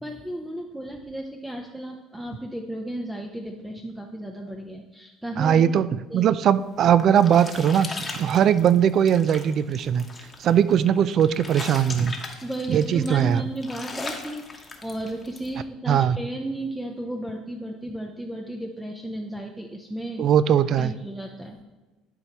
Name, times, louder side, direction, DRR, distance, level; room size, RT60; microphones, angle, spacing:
voice 1, 0.0-5.7 6.1-6.3 12.4-20.3 20.8-21.6, right 1 dB, 5° right, 2 dB, 0.6 m, -34 dB
voice 2, 5.4-10.1 10.4-12.2 12.7-13.4 15.9-16.2 20.2-20.9, right 9 dB, 50° right, 16 dB, 0.3 m, -20 dB
sound 1, 6.6-15.5, left 3 dB, 20° left, 1.0 m, -39 dB
11.0 x 4.6 x 2.9 m, 1.2 s
cardioid pair, 115°, 0 cm